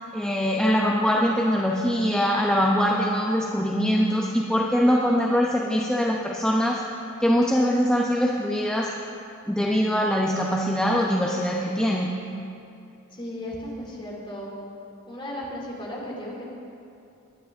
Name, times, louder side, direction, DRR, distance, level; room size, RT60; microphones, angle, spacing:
voice 1, 0.1-6.8 7.2-8.9 9.5-12.2, equal, 5° left, -3 dB, 0.8 m, -23 dB
voice 2, 13.1-14.5 15.1-16.5, left 1 dB, 25° left, -4 dB, 2.9 m, -35 dB
22.5 x 10.5 x 3.6 m, 2.6 s
head